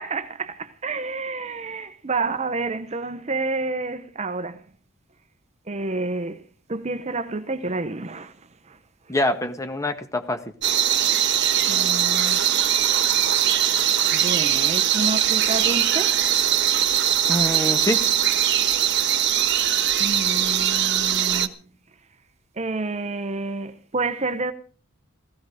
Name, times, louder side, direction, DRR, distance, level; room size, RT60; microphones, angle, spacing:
voice 1, 0.0-4.6 5.7-6.4 6.7-8.3 8.7-8.8 11.7-12.5 14.1-16.2 20.0-21.7 22.6-24.5, right 3 dB, 30° right, 0.9 m, -29 dB
voice 2, 9.1-10.4 17.3-18.0, left 1 dB, 15° left, 1.6 m, -25 dB
sound 1, 10.6-21.5, right 10 dB, 55° right, 1.3 m, -21 dB
16.5 x 15.5 x 4.9 m
head